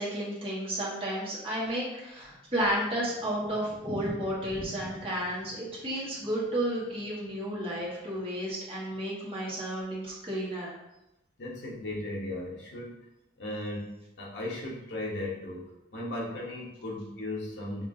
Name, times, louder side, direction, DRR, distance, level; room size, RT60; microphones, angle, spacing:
voice 1, 0.0-10.7, right 1 dB, 30° right, -6 dB, 1.2 m, -32 dB
Thunder, 2.3-8.2 8.5-8.6 8.9-9.0 9.2-9.3 9.9-10.2, equal, ahead, 0.9 m, -45 dB
voice 2, 11.4-13.0 13.4-17.9, left 1 dB, 75° left, -3 dB, 1.0 m, -37 dB
5.4 x 2.6 x 2.6 m, 0.90 s
head